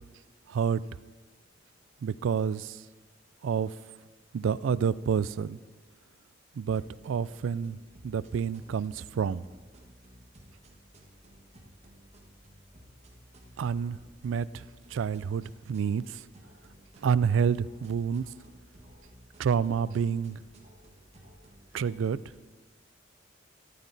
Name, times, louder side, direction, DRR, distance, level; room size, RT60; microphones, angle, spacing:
voice 1, 0.5-0.8 2.0-2.8 3.4-3.7 4.3-5.6 6.6-7.8 8.0-9.4 13.6-14.0 14.2-14.6 14.9-16.2 17.0-18.3 19.4-20.4 21.7-22.2, right 7 dB, 80° right, 18 dB, 0.3 m, -28 dB
sound 1, 6.7-22.4, equal, 35° right, 1.5 m, -55 dB
13.0 x 11.0 x 4.0 m, 1.3 s
head